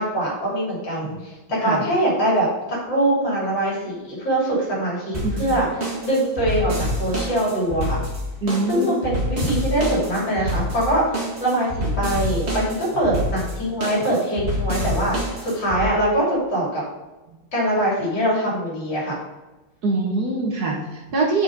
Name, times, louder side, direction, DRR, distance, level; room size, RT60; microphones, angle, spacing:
voice 1, 0.0-5.7 6.0-8.0 8.7-11.0 11.4-15.2 15.4-16.8 17.5-19.2, right 1 dB, 65° left, -5 dB, 3.9 m, -23 dB
sound 1, 5.1-15.8, equal, 35° right, 2.1 m, -27 dB
voice 2, 8.4-9.0 19.8-21.4, right 2 dB, 55° right, 0 dB, 1.8 m, -23 dB
6.4 x 6.2 x 5.3 m, 1.1 s
omnidirectional pair, 2.2 m